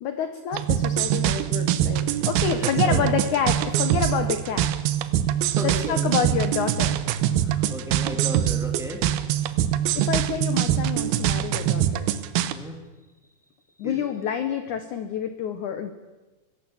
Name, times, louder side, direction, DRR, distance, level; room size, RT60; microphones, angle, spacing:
voice 1, 0.0-4.7 5.6-7.0 9.9-12.1 13.8-15.9, left 8 dB, 85° left, 9 dB, 1.7 m, -28 dB
sound 1, 0.5-12.5, right 11 dB, 75° right, 2.5 m, -24 dB
voice 2, 2.6-3.2 5.6-6.1 7.4-9.0 12.4-12.7 13.8-14.1, equal, ahead, 2 dB, 1.4 m, -35 dB
24.0 x 16.5 x 7.1 m, 1.2 s
omnidirectional pair, 5.0 m